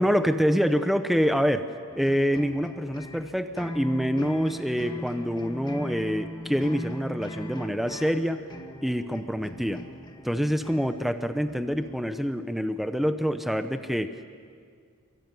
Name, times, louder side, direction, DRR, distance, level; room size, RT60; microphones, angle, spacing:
voice 1, 0.0-8.4 8.8-9.8 10.2-14.3, equal, ahead, 8 dB, 0.8 m, -26 dB
sound 1, 1.9-12.0, equal, 20° left, 1.8 m, -40 dB
26.5 x 23.0 x 9.5 m, 2.2 s
head